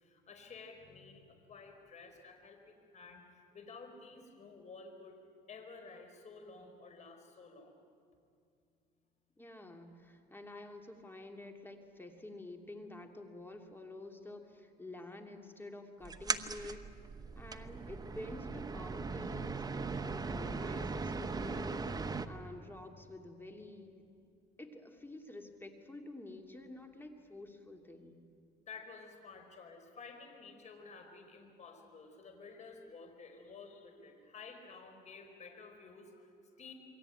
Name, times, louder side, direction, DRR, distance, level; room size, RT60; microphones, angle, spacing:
voice 1, 0.0-5.2 5.5-7.8 15.2-15.3 28.7-36.7, left 4 dB, 45° left, 5 dB, 4.8 m, -52 dB
voice 2, 9.4-16.9 17.4-19.6 19.9-24.0 24.6-28.2, left 2 dB, 10° left, 4 dB, 2.8 m, -49 dB
sound 1, 16.0-22.3, right 4 dB, 20° right, 1.1 m, -39 dB
28.0 x 22.5 x 9.2 m, 2.4 s
cardioid pair, 110°, 17 cm